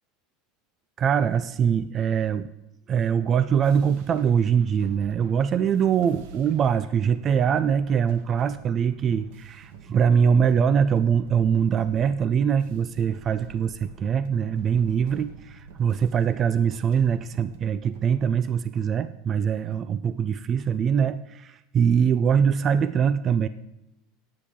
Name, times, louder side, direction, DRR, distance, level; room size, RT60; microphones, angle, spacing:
voice 1, 1.0-2.5 2.9-23.5, right 7 dB, 30° right, 13 dB, 0.4 m, -23 dB
sound 1, 3.6-18.3, right 6 dB, 70° right, 1.3 m, -47 dB
18.5 x 8.5 x 3.7 m, 0.93 s
supercardioid pair, 145°, 0 cm